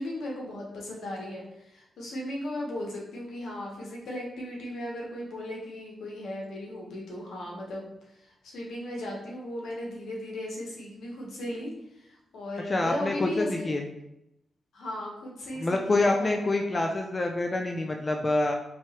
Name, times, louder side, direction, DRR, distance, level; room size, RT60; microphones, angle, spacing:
voice 1, 0.0-7.9 8.4-13.7 14.7-16.6, left 1 dB, 80° left, -2 dB, 1.1 m, -36 dB
voice 2, 12.7-13.8 15.6-18.5, left 2 dB, 35° left, 3 dB, 0.5 m, -26 dB
4.6 x 2.8 x 3.0 m, 0.85 s
supercardioid pair, 50°, 0 cm